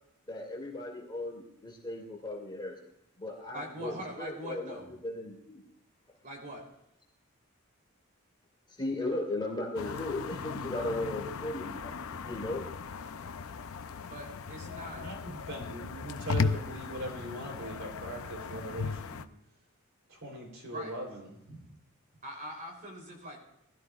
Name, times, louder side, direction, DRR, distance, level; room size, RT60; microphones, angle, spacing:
voice 1, 0.3-2.7 3.2-5.6 8.8-12.6, left 2 dB, 20° left, -1 dB, 2.5 m, -36 dB
voice 2, 3.5-4.9 6.2-6.6 14.0-15.0 20.7-20.9 22.2-23.4, equal, 40° right, 0 dB, 3.5 m, -42 dB
sound 1, 9.8-19.3, left 5 dB, 75° left, 0.6 m, -37 dB
voice 3, 14.9-19.2 20.1-21.7, right 1 dB, 65° right, 0 dB, 3.5 m, -41 dB
19.5 x 13.0 x 2.5 m, 0.79 s
head